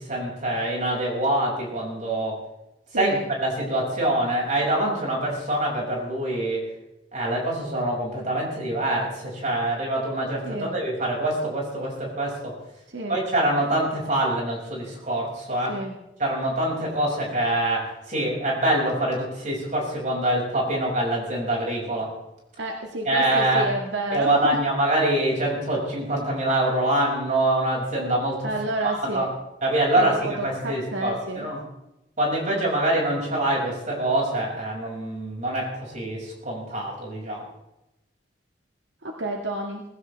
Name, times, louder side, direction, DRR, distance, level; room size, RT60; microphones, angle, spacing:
voice 1, 0.0-2.4 2.9-6.6 7.1-12.5 13.1-15.8 16.2-22.1 23.0-23.6 24.1-28.5 28.8-29.3 29.6-31.6 32.2-37.4, right 1 dB, 45° right, -2 dB, 6.1 m, -25 dB
voice 2, 2.9-3.2 10.4-10.7 12.9-13.2 15.7-16.0 22.6-24.6 28.4-29.3 30.0-31.5 39.0-39.8, right 1 dB, 85° right, 1 dB, 1.7 m, -30 dB
19.5 x 16.0 x 3.4 m, 0.89 s
head